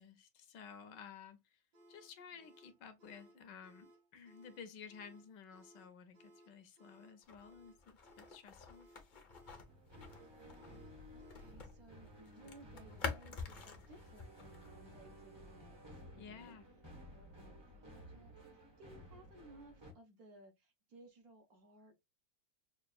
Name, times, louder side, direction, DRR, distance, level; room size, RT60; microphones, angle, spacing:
voice 1, 0.0-1.6 1.9-8.9 16.2-16.6, left 6 dB, 70° left, 1.2 m, -54 dB
sound 1, 1.7-11.7, equal, 90° right, 2.7 m, -64 dB
sound 2, 7.2-11.8 12.0-14.8, left 4 dB, 55° left, 0.5 m, -47 dB
sound 3, 9.7-19.9, equal, 25° right, 0.6 m, -56 dB
voice 2, 10.4-16.5 17.1-22.0, right 1 dB, 60° right, 1.0 m, -61 dB
6.0 x 2.4 x 2.2 m
omnidirectional pair, 2.1 m